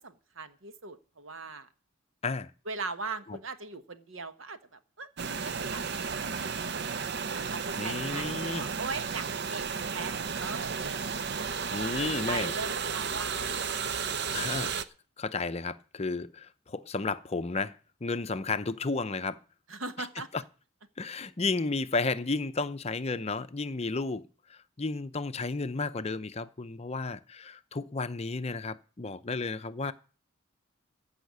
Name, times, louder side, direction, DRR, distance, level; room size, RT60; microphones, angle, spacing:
voice 1, 0.0-1.7 2.7-5.1 5.4-5.9 6.1-6.9 7.5-9.7 9.9-11.7 12.3-13.4 14.1-14.2 19.7-20.3, right 4 dB, 70° right, 1.3 m, -40 dB
sound 1, 5.2-14.8, right 6 dB, 55° right, 0.7 m, -33 dB
voice 2, 7.8-8.6 11.7-12.5 14.3-14.7 15.2-19.4 20.0-20.1 20.3-20.4 21.0-29.9, left 3 dB, 30° left, 0.6 m, -33 dB
15.0 x 5.7 x 9.3 m
head